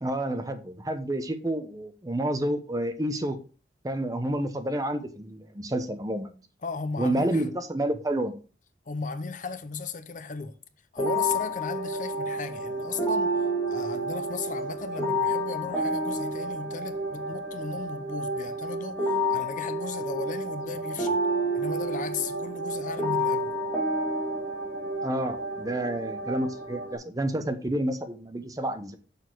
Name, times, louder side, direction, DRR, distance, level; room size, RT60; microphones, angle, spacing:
voice 1, 0.0-3.4 3.8-6.3 7.0-8.4 25.0-29.0, right 1 dB, 20° right, 0.8 m, -29 dB
voice 2, 6.6-7.5 8.9-10.5 10.9-13.3 13.7-19.0 19.3-21.2 21.5-23.5, left 4 dB, 45° left, 0.7 m, -36 dB
sound 1, 11.0-27.0, equal, 15° left, 2.1 m, -30 dB
6.6 x 6.3 x 4.5 m
head